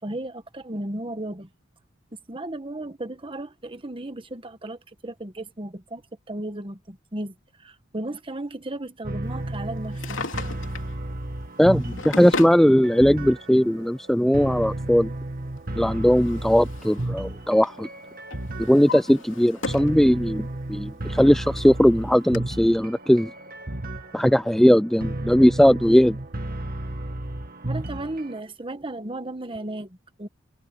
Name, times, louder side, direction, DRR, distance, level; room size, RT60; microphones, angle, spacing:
voice 1, 0.0-1.5 2.3-6.0 6.3-10.2 27.6-30.3, right 1 dB, 25° right, 1.4 m, -35 dB
sound 1, 9.0-28.4, right 1 dB, 50° right, 2.1 m, -33 dB
Drawer open or close, 9.8-10.9 11.7-12.6 13.7-13.8 15.6-17.1 17.4-17.8 18.3-20.0 20.4-20.5 21.2-21.3 21.6-21.7 22.3-22.4, left 3 dB, 90° left, 2.9 m, -35 dB
voice 2, 11.6-15.1 15.8-17.9 18.6-23.3 24.1-26.2, equal, ahead, 0.3 m, -19 dB
head